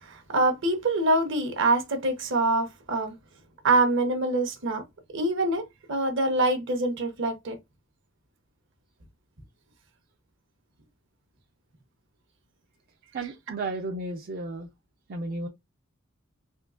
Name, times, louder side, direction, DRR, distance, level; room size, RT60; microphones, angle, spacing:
voice 1, 0.0-3.1 3.6-4.8 5.1-7.6, right 2 dB, 65° right, 0.9 m, -25 dB
voice 2, 13.1-14.7 15.1-15.5, right 2 dB, 45° right, 0.4 m, -33 dB
3.6 x 2.7 x 2.4 m
head